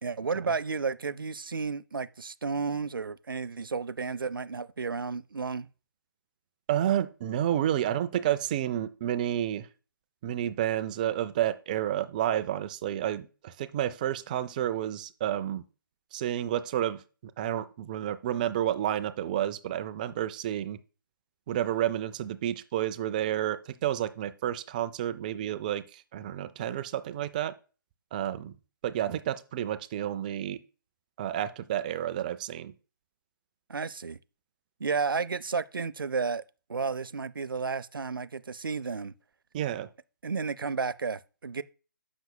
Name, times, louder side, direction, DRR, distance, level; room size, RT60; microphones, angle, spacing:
voice 1, 0.0-5.7 33.7-34.2 34.8-36.4 36.7-39.1 40.2-41.6, right 5 dB, 80° right, 0.5 m, -32 dB
voice 2, 6.7-9.7 10.2-15.6 16.1-17.0 17.4-20.8 21.5-27.5 28.1-28.5 28.8-30.6 31.2-32.7 39.5-39.9, right 11 dB, 20° right, 0.4 m, -30 dB
13.5 x 6.0 x 2.2 m
figure-of-eight pair, 150°, 11 cm